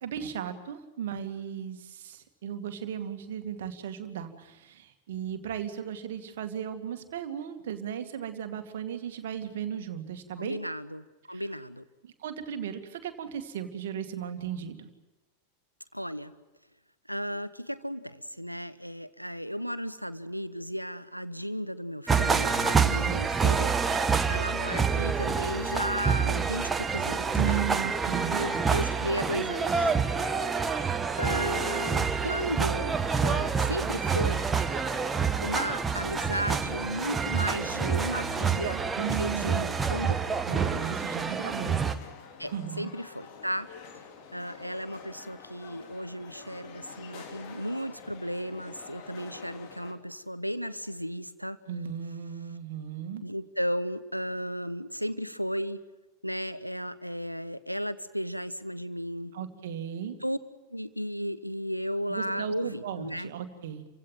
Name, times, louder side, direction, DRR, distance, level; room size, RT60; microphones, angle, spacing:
voice 1, 0.0-10.6 11.3-11.4 12.0-14.9 27.3-28.5 39.0-39.7 40.5-42.0 42.5-42.9 51.7-53.2 59.3-60.2 62.1-63.9, right 9 dB, 60° right, 7 dB, 2.3 m, -36 dB
voice 2, 10.4-11.8 15.9-16.3 17.1-23.7 24.3-27.6 28.4-29.9 31.2-34.4 35.4-38.8 39.2-40.3 42.4-43.7 44.3-51.6 53.2-55.8 56.2-59.3 60.2-60.4 60.7-63.3, equal, 90° right, 14 dB, 1.0 m, -34 dB
sound 1, 22.1-41.9, right 5 dB, 15° right, 1.4 m, -27 dB
sound 2, 34.1-49.9, left 6 dB, 45° left, 3.2 m, -48 dB
29.5 x 16.5 x 9.2 m, 1.1 s
figure-of-eight pair, 90°, 0 cm